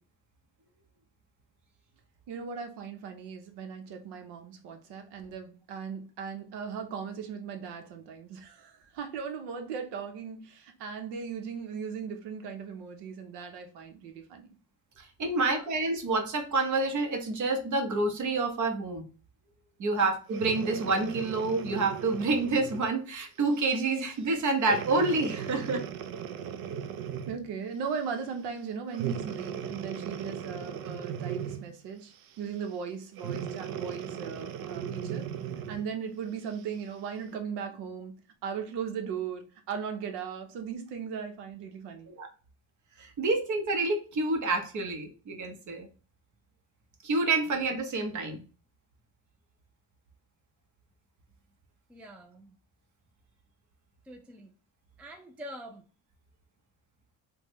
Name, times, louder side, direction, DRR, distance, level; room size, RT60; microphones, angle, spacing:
voice 1, 2.3-14.5 27.3-35.3 35.7-38.2 38.4-42.1, right 6 dB, 85° right, 0.8 m, -38 dB
voice 2, 15.0-19.1 19.8-25.9 42.1-42.3 43.0-45.9 47.0-48.4, right 3 dB, 50° right, 0.9 m, -28 dB
Breathing, 20.3-22.9 23.6-23.8 24.6-27.5 28.9-31.8 33.2-35.9 36.5-36.6, right 8 dB, 65° right, 0.5 m, -37 dB
voice 3, 51.9-52.5 54.1-54.5 55.0-55.8, equal, 5° right, 0.3 m, -45 dB
3.5 x 2.2 x 2.9 m
cardioid pair, 115°, 39 cm